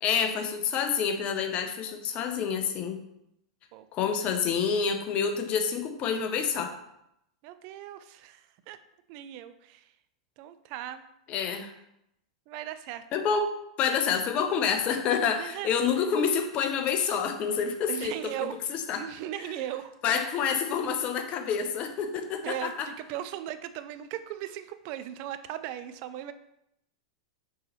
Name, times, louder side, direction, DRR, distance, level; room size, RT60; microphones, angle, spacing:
voice 1, 0.0-3.0 3.9-6.7 11.3-11.7 13.1-13.5 13.8-19.0 20.0-22.9, left 6 dB, 40° left, 6 dB, 0.6 m, -28 dB
voice 2, 7.4-8.8 9.1-9.8 10.4-11.0 12.5-13.0 15.4-15.7 17.9-18.6 19.0-19.9 22.4-26.3, right 12 dB, 50° right, 11 dB, 0.3 m, -37 dB
4.5 x 3.0 x 3.0 m, 0.80 s
hypercardioid pair, 100°, 3 cm